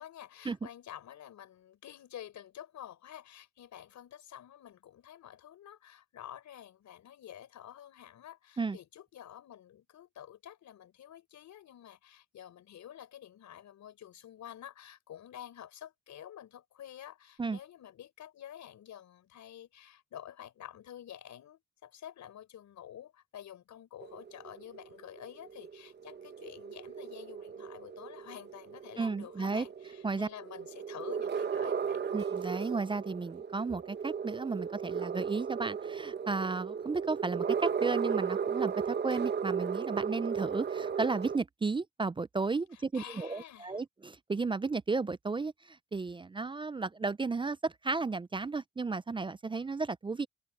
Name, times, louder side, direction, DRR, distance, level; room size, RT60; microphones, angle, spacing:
voice 1, 0.0-32.2 42.7-43.8, left 10 dB, 70° left, 5.3 m, -49 dB
sound 1, 24.0-41.4, right 6 dB, 35° right, 0.9 m, -35 dB
voice 2, 29.0-29.7 30.0-30.3 32.1-50.3, right 4 dB, 15° right, 0.4 m, -34 dB
cardioid pair, 90°, 30 cm